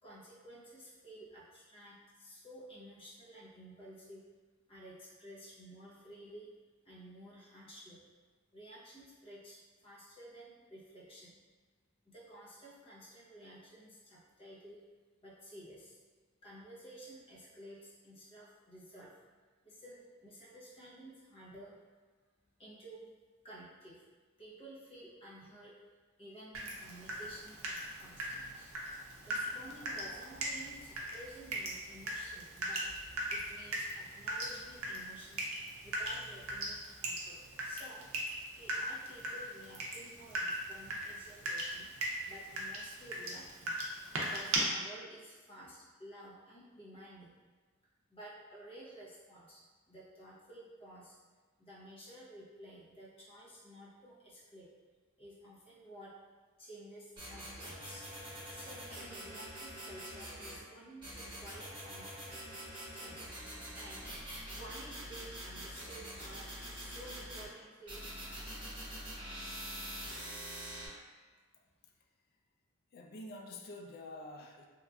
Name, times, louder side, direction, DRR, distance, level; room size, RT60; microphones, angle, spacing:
voice 1, 0.0-4.2 4.7-6.5 6.8-8.0 8.5-11.4 12.0-14.8 15.2-16.0 16.4-19.1 19.6-21.7 22.6-23.1 23.4-24.1 24.4-25.8 26.2-28.7 29.2-32.9 33.3-35.5 35.8-38.1 38.6-41.9 42.3-43.7 44.1-47.3 48.1-51.2 51.6-54.7 55.2-56.1 56.6-58.1 58.5-62.2 62.7-63.3 63.7-64.1 64.4-68.1, right 1 dB, 25° left, -7 dB, 0.7 m, -53 dB
Water tap faucet / Drip, 26.5-44.6, right 1 dB, 75° right, 0.5 m, -40 dB
sound 1, 57.2-60.6 61.0-67.5 67.9-70.9, equal, 25° right, 1.1 m, -45 dB
voice 2, 72.9-74.7, left 2 dB, 45° left, 2 dB, 0.3 m, -47 dB
2.9 x 2.4 x 2.2 m, 1.4 s
head